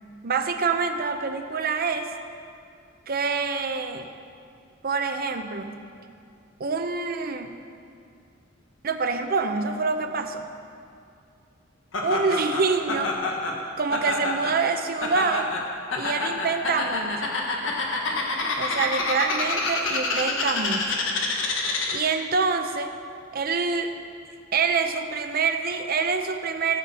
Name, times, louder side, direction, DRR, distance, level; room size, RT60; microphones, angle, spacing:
voice 1, 0.2-2.1 3.1-4.1 4.8-5.8 6.6-7.6 8.8-10.5 12.0-13.1 13.8-15.5 16.0-17.4 18.6-21.0 21.9-22.9 23.3-23.9 24.5-26.8, right 4 dB, 50° right, 7 dB, 0.7 m, -26 dB
Laughter, 11.9-22.2, left 3 dB, 80° left, 1.4 m, -28 dB
15.0 x 7.9 x 4.3 m, 2.4 s
head